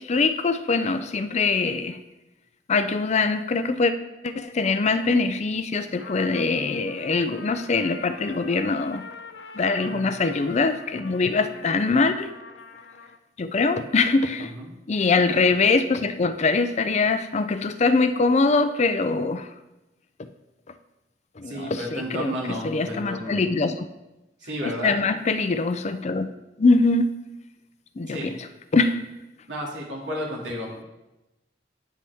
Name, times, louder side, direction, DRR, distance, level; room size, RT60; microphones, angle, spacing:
voice 1, 0.0-2.0 2.7-3.9 4.2-9.0 9.5-12.3 13.4-14.5 14.9-19.5 21.4-23.9 24.6-26.3 26.6-27.1 28.0-28.5 28.7-29.0, left 3 dB, 40° left, 10 dB, 0.5 m, -23 dB
Trumpet, 6.0-13.2, left 4 dB, 80° left, 0.7 m, -44 dB
voice 2, 14.4-14.7 21.5-23.4 24.4-24.9 28.1-28.3 29.5-30.8, equal, 90° right, -3 dB, 2.4 m, -32 dB
9.3 x 7.2 x 3.5 m, 0.98 s
head